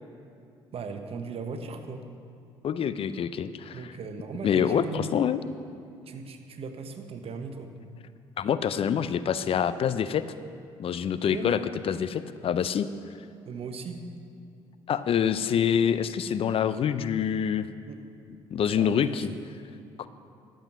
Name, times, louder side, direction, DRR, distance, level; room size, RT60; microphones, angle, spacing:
voice 1, 0.7-2.0 3.7-5.1 6.1-7.7 11.2-11.6 13.4-14.0 17.9-18.0 18.7-19.4, right 4 dB, 50° right, 6 dB, 1.1 m, -38 dB
voice 2, 2.6-3.9 4.4-5.4 8.4-10.2 10.8-11.6 11.8-12.9 14.9-17.7 18.5-19.3 20.0-20.1, left 8 dB, 50° left, 13 dB, 0.5 m, -26 dB
12.0 x 7.8 x 6.1 m, 2.5 s
hypercardioid pair, 60°, 12 cm